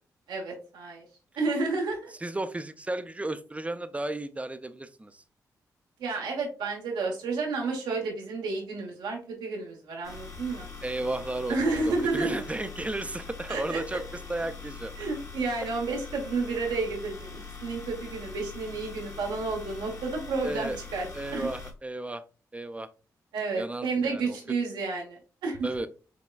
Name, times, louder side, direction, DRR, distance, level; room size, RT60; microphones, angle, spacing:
voice 1, 0.3-1.0 1.3-2.1 6.0-10.7 11.5-12.4 13.5-13.8 15.0-21.1 21.3-21.5 23.3-25.7, right 3 dB, 85° right, 0 dB, 1.1 m, -31 dB
voice 2, 2.2-5.2 10.8-11.6 11.9-14.9 20.4-20.8 21.1-22.2 22.5-22.9 23.6-24.4 25.6-25.9, right 2 dB, 15° right, 11 dB, 0.5 m, -34 dB
sound 1, 10.0-21.7, left 5 dB, 45° left, 1.3 m, -43 dB
6.1 x 2.2 x 2.3 m, 0.36 s
supercardioid pair, 45°, 8 cm